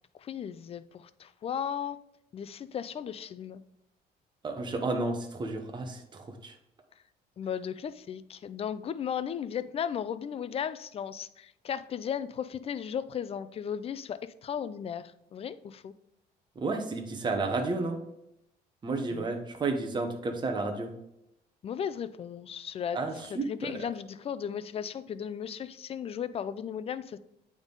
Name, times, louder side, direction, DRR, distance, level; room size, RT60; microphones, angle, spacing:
voice 1, 0.2-2.0 2.3-3.6 7.4-15.9 19.1-19.3 21.6-23.0 23.3-27.2, left 8 dB, 35° left, 14 dB, 0.4 m, -36 dB
voice 2, 4.4-6.5 16.6-18.0 18.8-20.9 22.9-23.7, right 3 dB, 25° right, 4 dB, 1.0 m, -32 dB
8.8 x 3.6 x 3.9 m, 0.82 s
cardioid pair, 110°, 17 cm